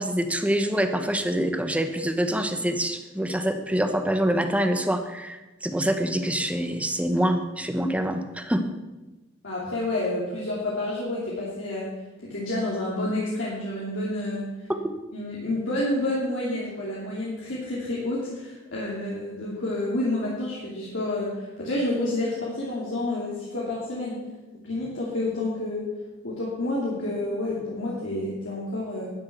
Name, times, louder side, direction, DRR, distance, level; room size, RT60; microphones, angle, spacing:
voice 1, 0.0-8.6 14.7-14.9, right 1 dB, 5° right, 7 dB, 1.0 m, -25 dB
voice 2, 9.4-11.9 12.2-14.5 15.1-24.2 24.6-25.9 26.2-29.1, left 1 dB, 75° left, -6 dB, 2.9 m, -29 dB
12.0 x 9.7 x 6.1 m, 1.1 s
head